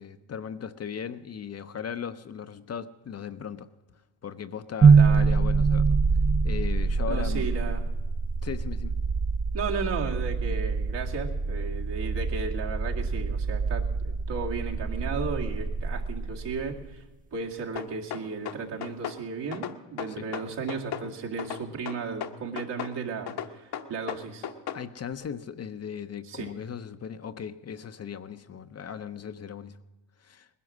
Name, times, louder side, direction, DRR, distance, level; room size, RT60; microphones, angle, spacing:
voice 1, 0.0-3.7 4.2-6.0 6.4-7.7 8.4-9.0 20.1-20.3 24.7-29.8 30.2-30.5, left 7 dB, 35° left, 10 dB, 0.7 m, -37 dB
sound 1, 4.8-16.9, right 5 dB, 20° right, 0.4 m, -25 dB
voice 2, 5.0-5.4 7.1-7.8 9.5-17.0 17.3-24.5 26.3-26.5, right 5 dB, 65° right, 0 dB, 2.3 m, -34 dB
sound 2, 17.8-19.2 19.5-21.1 21.4-23.0 23.3-24.8, left 9 dB, 60° left, 1.1 m, -35 dB
19.5 x 11.0 x 6.2 m, 1.2 s
supercardioid pair, 75°, 44 cm